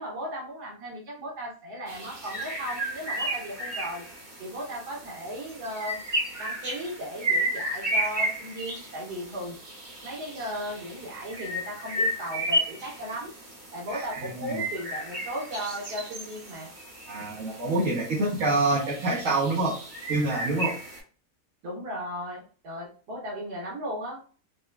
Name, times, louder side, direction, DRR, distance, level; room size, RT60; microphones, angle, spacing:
voice 1, 0.0-4.0 4.4-6.0 6.4-9.6 10.0-13.3 13.7-16.7 21.6-24.2, equal, 90° right, -4 dB, 1.5 m, -36 dB
sound 1, 1.9-21.0, right 1 dB, 35° right, 1.2 m, -33 dB
voice 2, 13.9-14.6 17.1-19.7 20.1-20.8, right 2 dB, 60° right, -6 dB, 1.1 m, -26 dB
3.9 x 2.2 x 2.3 m, 0.39 s
omnidirectional pair, 1.7 m